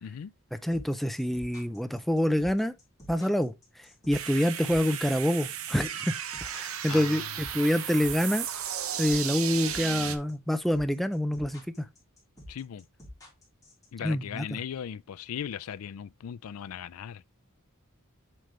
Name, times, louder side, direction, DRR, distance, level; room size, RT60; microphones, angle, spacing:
voice 1, 0.0-0.3 6.9-7.3 12.5-12.8 13.9-17.2, left 8 dB, 75° left, 0.4 m, -38 dB
voice 2, 0.5-2.7 3.1-3.5 4.1-6.1 6.4-8.5 9.0-11.9 14.0-14.6, equal, ahead, 0.4 m, -27 dB
sound 1, 0.7-13.9, left 1 dB, 15° left, 3.6 m, -48 dB
sound 2, 4.1-10.2, right 9 dB, 70° right, 0.9 m, -35 dB
7.7 x 5.1 x 3.2 m
head